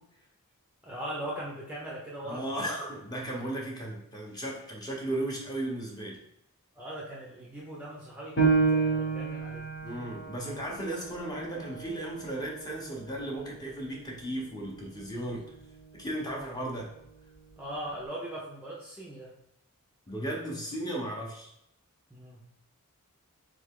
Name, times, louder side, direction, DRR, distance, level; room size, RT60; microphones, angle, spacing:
voice 1, 0.8-2.7 6.8-9.7 17.6-19.4 22.1-22.4, right 1 dB, 5° right, -5 dB, 0.6 m, -40 dB
voice 2, 2.2-6.2 9.8-15.4 16.0-16.9 20.1-21.5, right 1 dB, 20° left, -2 dB, 0.9 m, -35 dB
Piano, 8.4-13.5 14.0-14.1 14.7-15.2, right 4 dB, 50° left, 1.2 m, -30 dB
3.6 x 3.4 x 3.6 m, 0.80 s
head